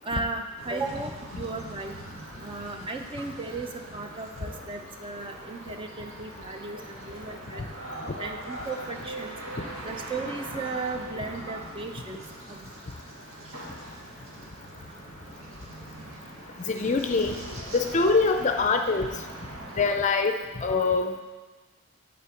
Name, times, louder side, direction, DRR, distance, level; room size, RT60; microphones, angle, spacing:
voice 1, 0.0-2.0 2.4-7.6 8.2-9.3 9.8-12.7, right 3 dB, 25° right, 5 dB, 0.5 m, -35 dB
sound 1, 0.6-19.9, right 1 dB, 70° right, 1.8 m, -43 dB
sound 2, 0.9-1.3 1.8-2.1 2.3-12.5 13.5-14.3 15.0-15.1 15.4-15.5 16.0-18.5, right 1 dB, 85° right, 2.7 m, -44 dB
voice 2, 16.6-17.4 17.7-19.1 19.8-21.2, left 4 dB, 35° left, 6 dB, 0.5 m, -24 dB
8.6 x 4.3 x 7.0 m, 1.3 s
head